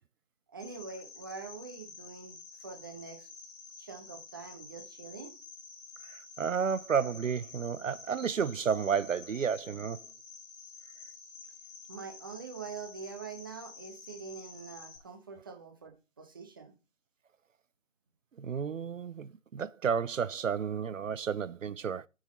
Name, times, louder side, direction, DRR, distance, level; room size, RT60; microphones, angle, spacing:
voice 1, 0.5-3.3 3.8-5.3 11.9-16.7, right 5 dB, 15° right, 0.8 m, -45 dB
Cricket, 0.6-15.0, left 5 dB, 25° left, 2.3 m, -50 dB
voice 2, 6.1-10.0 18.4-22.1, right 7 dB, 80° right, 0.6 m, -32 dB
6.9 x 6.4 x 4.1 m
figure-of-eight pair, 150°, 39 cm